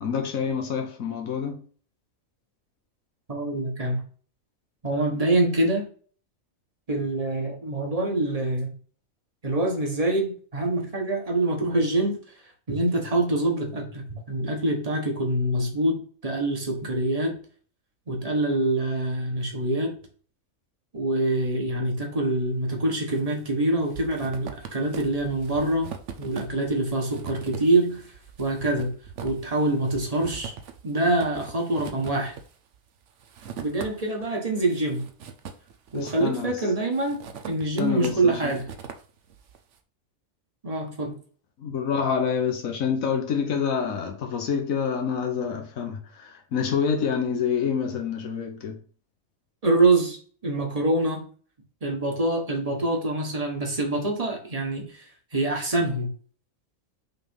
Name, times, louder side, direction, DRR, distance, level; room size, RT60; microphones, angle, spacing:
voice 1, 0.0-1.6 35.9-36.5 37.8-38.5 41.6-48.8, left 6 dB, 80° left, 1.5 m, -27 dB
voice 2, 3.3-4.0 4.8-5.9 6.9-8.7 9.4-12.2 12.7-17.4 18.1-20.0 20.9-25.9 26.2-28.0 28.4-28.9 29.2-30.5 30.8-32.3 33.6-35.0 35.9-37.2 37.5-38.6 40.6-41.2 49.6-50.2 50.4-51.3 51.8-54.9 55.3-56.1, right 2 dB, 25° right, 1.5 m, -25 dB
sound 1, 22.6-23.2 23.5-34.3 34.6-36.5 36.9-39.6, right 7 dB, 65° right, 1.1 m, -41 dB
5.9 x 3.5 x 5.4 m
omnidirectional pair, 1.4 m